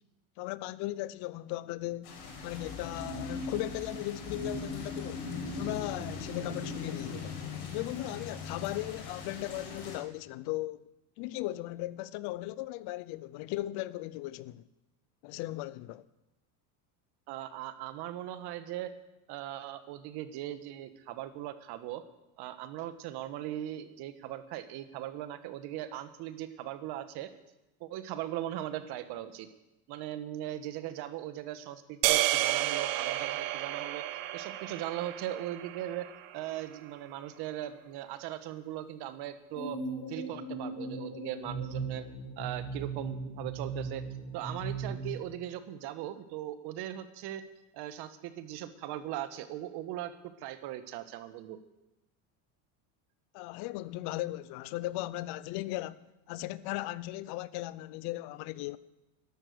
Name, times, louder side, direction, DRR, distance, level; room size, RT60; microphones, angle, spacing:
voice 1, 0.4-2.1 2.4-7.4 7.7-10.9 11.2-14.6 15.2-16.0 53.3-58.8, left 17 dB, 60° left, 0.7 m, -37 dB
sound 1, 2.0-10.0, left 3 dB, 80° left, 5.1 m, -39 dB
voice 2, 17.3-18.9 19.3-22.0 22.4-27.3 27.8-29.5 29.9-34.0 34.3-39.8 40.1-42.1 42.4-44.1 44.3-47.4 47.7-50.1 50.4-51.6, right 12 dB, 60° right, 1.4 m, -39 dB
sound 2, 32.0-36.4, right 15 dB, 75° right, 1.0 m, -31 dB
sound 3, 39.6-45.2, right 3 dB, 40° left, 3.3 m, -38 dB
12.5 x 12.0 x 6.7 m
supercardioid pair, 125°, 44 cm